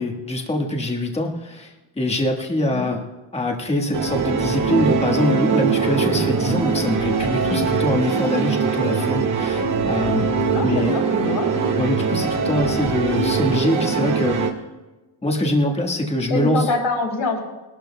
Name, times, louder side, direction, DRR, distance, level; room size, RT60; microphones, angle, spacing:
voice 1, 0.0-3.0 3.3-10.3 10.6-10.9 11.8-14.6 15.2-16.7, left 1 dB, 15° left, 2 dB, 1.4 m, -24 dB
sound 1, 3.9-14.5, right 5 dB, 40° right, 1.7 m, -22 dB
voice 2, 10.5-11.5 16.3-17.4, left 3 dB, 60° left, 0 dB, 3.6 m, -25 dB
21.5 x 12.5 x 2.3 m, 1.1 s
wide cardioid pair, 160°, 47 cm